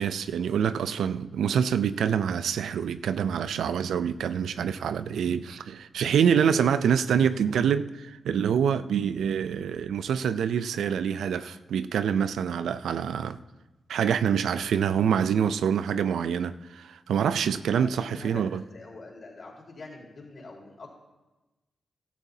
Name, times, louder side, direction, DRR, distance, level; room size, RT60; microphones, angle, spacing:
voice 1, 0.0-13.4 13.9-18.6, right 8 dB, 80° right, 0.4 m, -26 dB
voice 2, 17.7-18.5 18.7-21.0, left 3 dB, 55° left, 4.1 m, -45 dB
15.5 x 13.5 x 2.8 m
supercardioid pair, 45°, 0 cm